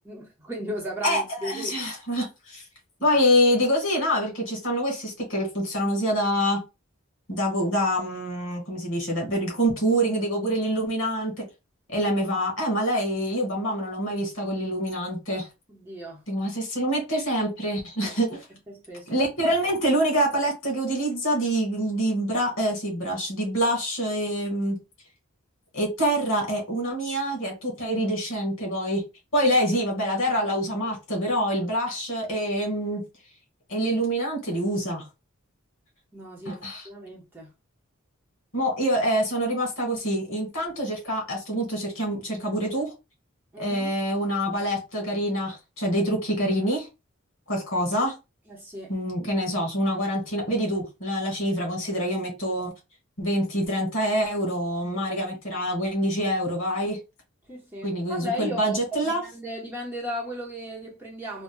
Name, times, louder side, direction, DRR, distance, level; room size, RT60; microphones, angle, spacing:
voice 1, 0.0-1.7 15.7-16.2 18.0-18.4 18.7-19.1 36.1-36.6 36.8-37.5 43.5-43.9 48.5-48.9 57.5-61.4, equal, 10° right, 0.9 m, -35 dB
voice 2, 1.0-2.6 3.0-6.6 7.3-11.4 11.9-15.5 16.3-18.4 19.1-24.8 25.7-29.0 29.3-33.0 33.7-35.0 36.4-36.8 38.5-42.9 43.6-46.9 47.5-48.1 48.9-52.7 53.2-57.0 57.8-59.2, equal, 65° left, 1.6 m, -26 dB
5.0 x 2.1 x 2.2 m
head